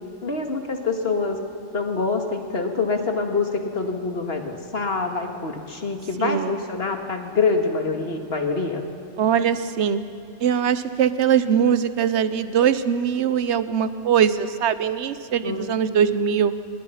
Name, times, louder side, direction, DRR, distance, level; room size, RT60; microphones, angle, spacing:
voice 1, 0.2-1.4 1.7-8.8 15.4-15.7, left 4 dB, 50° left, 4 dB, 2.2 m, -25 dB
voice 2, 6.2-6.6 9.2-10.0 10.4-16.5, right 8 dB, 60° right, 13 dB, 1.2 m, -21 dB
27.0 x 21.0 x 5.8 m, 2.7 s
omnidirectional pair, 1.3 m